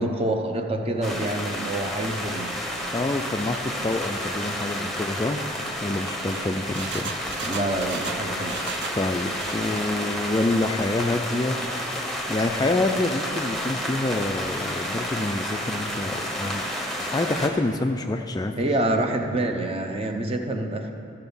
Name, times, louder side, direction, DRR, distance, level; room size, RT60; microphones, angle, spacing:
voice 1, 0.0-2.6 7.4-8.6 18.6-20.9, right 1 dB, 30° right, 4 dB, 0.8 m, -27 dB
sound 1, 1.0-17.5, equal, ahead, 1.0 m, -31 dB
voice 2, 2.9-5.4 5.8-7.1 8.9-11.9 12.3-16.6 17.1-18.5, left 2 dB, 20° left, 5 dB, 0.3 m, -27 dB
Engine, 6.0-9.0 9.3-9.9 10.3-10.9 11.2-11.3, right 6 dB, 60° right, 0.5 m, -38 dB
13.5 x 6.9 x 5.4 m, 2.5 s
head